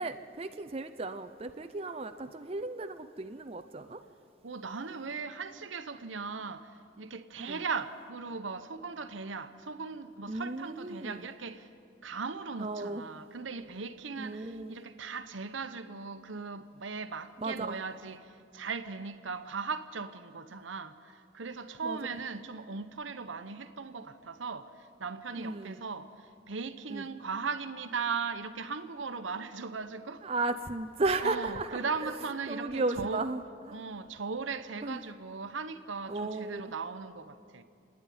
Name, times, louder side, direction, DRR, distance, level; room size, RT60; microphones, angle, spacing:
voice 1, 0.0-4.0 7.4-7.7 10.3-11.3 12.6-13.1 14.2-14.8 17.4-17.8 21.8-22.0 25.3-25.8 26.9-27.1 30.2-32.2 32.5-33.4 33.7-33.8 34.8-35.0 36.1-36.7, right 2 dB, 30° right, 0.6 m, -35 dB
voice 2, 4.4-6.7 7.0-11.7 12.0-30.3 31.2-33.2 33.7-37.6, right 5 dB, 80° right, 0.9 m, -38 dB
29.0 x 9.8 x 9.5 m
head